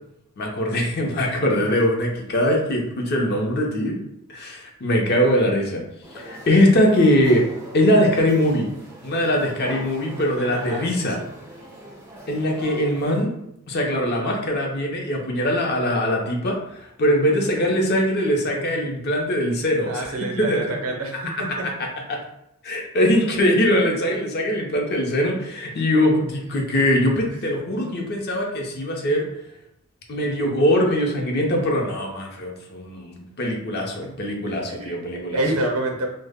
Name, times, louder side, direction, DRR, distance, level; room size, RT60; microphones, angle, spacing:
voice 1, 0.4-4.0 4.3-5.8 6.1-7.4 7.7-8.7 9.0-11.2 12.3-13.3 13.7-20.1 20.4-20.6 22.1-22.2 22.6-29.3 30.1-35.4, equal, 45° left, 1 dB, 0.5 m, -21 dB
sound 1, 6.0-13.2, right 1 dB, 10° right, 0.4 m, -42 dB
voice 2, 10.2-11.2 19.9-21.7 26.4-26.7 27.3-27.4 28.6-29.2 34.0-34.1 34.7-35.0 35.3-36.1, right 2 dB, 70° right, 2 dB, 0.6 m, -29 dB
2.0 x 2.0 x 3.4 m, 0.82 s
head